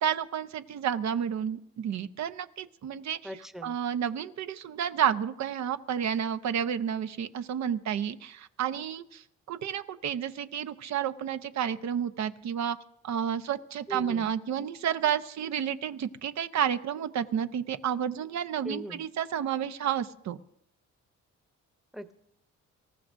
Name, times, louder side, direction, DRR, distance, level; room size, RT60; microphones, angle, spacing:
voice 1, 0.0-3.2 3.6-9.2 9.5-12.8 13.0-20.4, right 9 dB, 65° right, 10 dB, 0.9 m, -31 dB
voice 2, 3.2-3.7 13.9-14.3 18.6-19.0 21.9-22.1, equal, ahead, 9 dB, 0.9 m, -39 dB
25.5 x 14.5 x 2.7 m, 0.76 s
cardioid pair, 90°, 30 cm